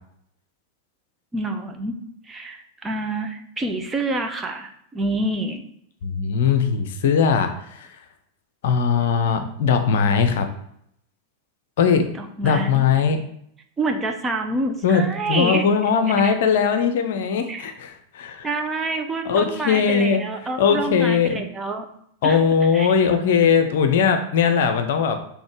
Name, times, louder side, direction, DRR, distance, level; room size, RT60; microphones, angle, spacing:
voice 1, 1.3-1.9 2.2-5.6 12.1-12.9 13.8-15.6 17.5-17.7 18.4-21.9 22.2-22.4 22.7-22.9, right 2 dB, 15° right, 4 dB, 0.8 m, -27 dB
voice 2, 6.0-7.9 8.6-10.5 11.8-12.0 12.4-13.2 14.8-18.5 19.3-20.2 20.6-21.4 22.2-25.2, left 6 dB, 55° left, 8 dB, 0.7 m, -20 dB
6.4 x 3.3 x 4.8 m, 0.71 s
figure-of-eight pair, 90°, 0 cm